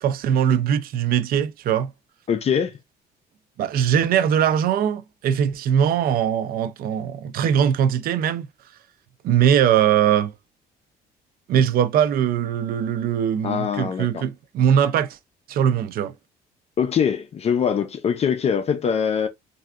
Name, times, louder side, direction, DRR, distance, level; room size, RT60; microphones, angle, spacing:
voice 1, 0.0-1.9 3.6-8.5 9.2-10.3 11.5-15.2 15.5-16.1, right 9 dB, 60° right, 0.5 m, -21 dB
voice 2, 2.3-2.8 13.4-14.2 16.8-19.3, left 7 dB, 40° left, 0.5 m, -23 dB
3.3 x 2.6 x 2.4 m
cardioid pair, 110°, 17 cm